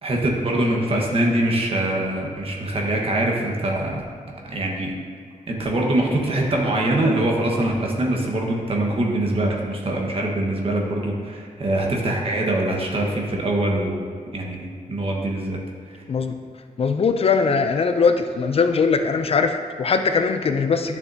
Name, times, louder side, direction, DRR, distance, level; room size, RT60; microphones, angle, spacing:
voice 1, 0.0-4.0 4.5-4.9 5.5-14.0 14.3-15.6 15.9-16.0, right 1 dB, 45° right, -1 dB, 1.3 m, -23 dB
voice 2, 16.8-21.0, left 5 dB, 45° left, 7 dB, 0.4 m, -20 dB
11.5 x 7.2 x 2.7 m, 2.1 s
wide cardioid pair, 165°, 14 cm